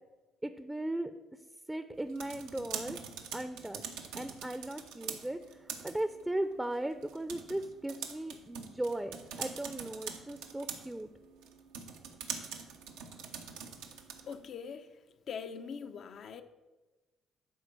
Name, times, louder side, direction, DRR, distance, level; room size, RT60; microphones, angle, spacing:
voice 1, 0.4-1.1 1.7-3.0 3.3-11.1, right 1 dB, 10° right, 0.6 m, -37 dB
sound 1, 1.9-14.5, right 7 dB, 85° right, 1.0 m, -44 dB
voice 2, 14.3-14.9 15.3-16.4, left 6 dB, 60° left, 0.8 m, -42 dB
10.0 x 4.4 x 6.8 m
hypercardioid pair, 55°, 0 cm